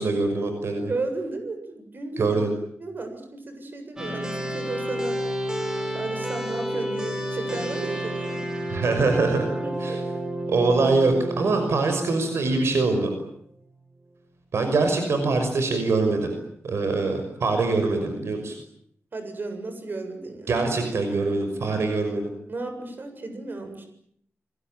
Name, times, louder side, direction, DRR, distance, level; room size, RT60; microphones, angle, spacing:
voice 1, 0.0-0.9 2.2-2.5 8.7-9.5 9.8-10.0 10.5-13.1 14.5-16.3 16.6-18.6 20.5-22.3, right 3 dB, 75° right, 6 dB, 5.8 m, -23 dB
voice 2, 0.9-2.4 2.8-5.2 5.9-8.4 9.6-10.0 19.1-20.6 22.5-23.8, right 3 dB, 45° right, 7 dB, 7.5 m, -34 dB
sound 1, 4.0-13.3, right 1 dB, 15° right, 7.8 m, -31 dB
28.5 x 22.5 x 9.1 m, 0.69 s
wide cardioid pair, 130°, 5 cm